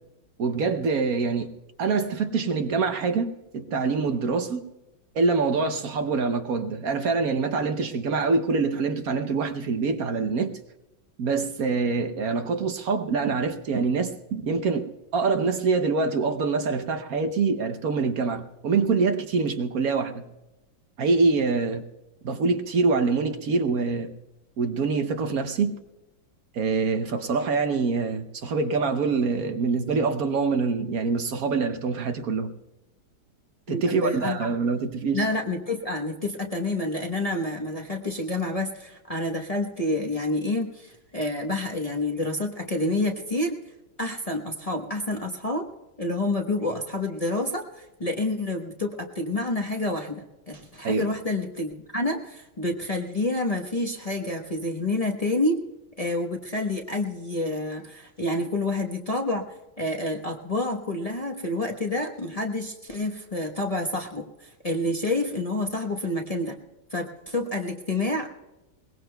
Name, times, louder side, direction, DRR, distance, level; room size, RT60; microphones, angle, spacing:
voice 1, 0.4-1.5 1.8-4.6 5.1-10.5 11.2-20.3 21.0-21.8 22.2-24.1 24.6-25.8 26.5-32.5 33.7-35.3 50.8-51.1, right 4 dB, 60° right, 1.2 m, -25 dB
voice 2, 33.7-34.5 35.1-43.6 44.0-45.7 46.0-55.6 56.0-59.4 59.8-66.6 66.9-68.3, left 2 dB, 25° left, 1.0 m, -28 dB
22.0 x 20.0 x 2.3 m
omnidirectional pair, 1.9 m